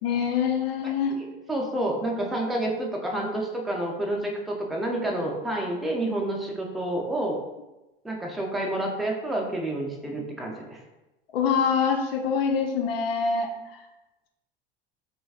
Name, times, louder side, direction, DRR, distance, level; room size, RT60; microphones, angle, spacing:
voice 1, 0.0-1.2 11.3-13.5, left 6 dB, 80° left, 3 dB, 0.5 m, -25 dB
voice 2, 1.2-7.4 8.0-10.8, right 1 dB, ahead, -1 dB, 0.5 m, -29 dB
3.9 x 2.4 x 2.4 m, 1.0 s
hypercardioid pair, 85°, 29 cm